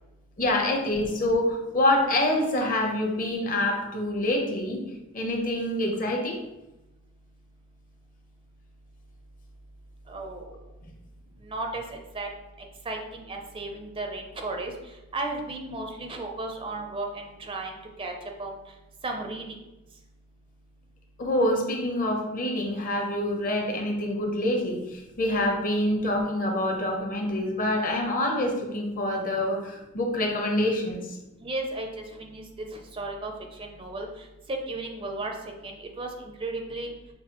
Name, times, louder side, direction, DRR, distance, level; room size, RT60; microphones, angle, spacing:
voice 1, 0.4-4.8 5.1-6.4 21.2-31.2, left 1 dB, 40° left, 1 dB, 0.7 m, -26 dB
voice 2, 10.1-10.6 11.4-11.8 12.1-12.3 12.9-14.7 15.1-18.1 18.4-18.5 19.0-19.6 31.4-33.3 33.6-34.1 34.5-35.3 35.6-36.9, right 2 dB, 25° right, 3 dB, 0.4 m, -34 dB
6.0 x 2.3 x 2.9 m, 0.98 s
head